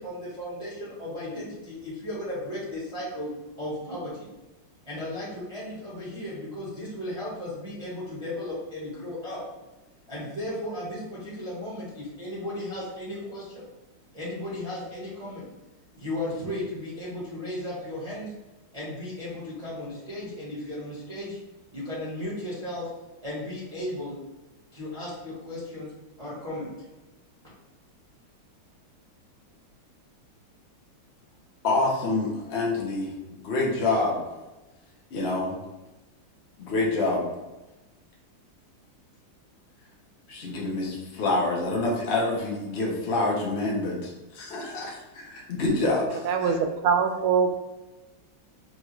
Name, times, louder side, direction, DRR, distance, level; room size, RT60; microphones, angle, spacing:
voice 1, 0.0-3.3 3.6-4.3 4.8-9.4 10.1-13.6 14.1-15.5 15.9-18.3 18.7-21.4 21.7-22.9 23.2-24.1 24.7-25.9 26.2-26.7, left 1 dB, 20° right, -9 dB, 1.1 m, -35 dB
voice 2, 31.6-34.2 35.1-35.6 36.6-37.3 40.3-46.6, left 2 dB, 75° left, -3 dB, 0.6 m, -27 dB
voice 3, 46.2-47.6, right 6 dB, 85° right, 6 dB, 1.4 m, -23 dB
6.0 x 2.4 x 3.0 m, 1.1 s
omnidirectional pair, 2.3 m